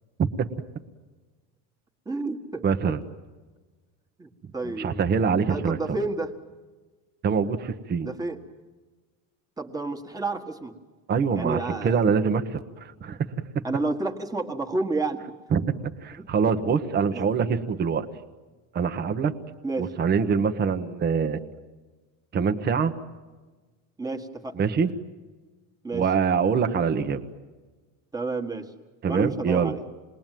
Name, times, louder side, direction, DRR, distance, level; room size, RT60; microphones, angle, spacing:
voice 1, 2.0-3.0 4.2-5.0 5.4-6.3 8.0-8.4 9.6-10.7 11.3-12.0 13.6-15.2 16.2-16.3 17.1-17.3 19.6-19.9 24.0-24.6 25.8-26.0 28.1-28.7 29.1-29.8, right 3 dB, 10° right, 3 dB, 1.5 m, -30 dB
voice 2, 2.6-3.0 4.6-6.0 7.2-8.1 11.1-13.2 15.5-15.7 16.0-18.1 18.7-19.3 19.8-21.4 22.3-22.9 24.6-24.9 25.9-27.2 29.0-29.7, right 6 dB, 25° right, 7 dB, 1.0 m, -24 dB
28.0 x 21.0 x 9.1 m, 1.3 s
cardioid pair, 170°, 39 cm